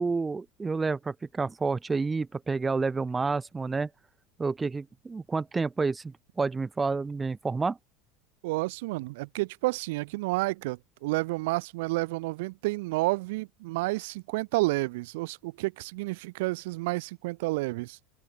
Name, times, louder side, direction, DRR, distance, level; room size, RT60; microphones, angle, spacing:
voice 1, 0.0-3.9 4.4-7.8, right 4 dB, 10° right, 2.2 m, -29 dB
voice 2, 8.4-18.0, right 22 dB, 75° right, 2.2 m, -30 dB
open air
cardioid pair, 175°, 0 cm